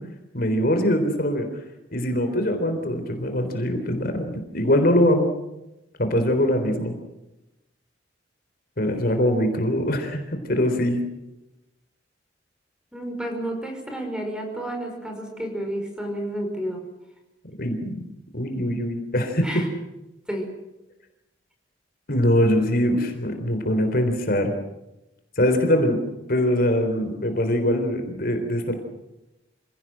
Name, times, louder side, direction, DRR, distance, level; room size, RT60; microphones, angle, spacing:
voice 1, 0.3-1.5 1.9-5.3 6.0-7.0 8.8-11.0 17.6-18.0 18.3-19.5 22.1-24.5 25.4-26.0 26.3-28.8, left 1 dB, 55° left, 6 dB, 3.9 m, -22 dB
voice 2, 12.9-16.9 19.4-19.7 20.3-20.6, right 1 dB, 5° right, 3 dB, 5.4 m, -31 dB
27.5 x 17.0 x 7.7 m, 0.94 s
head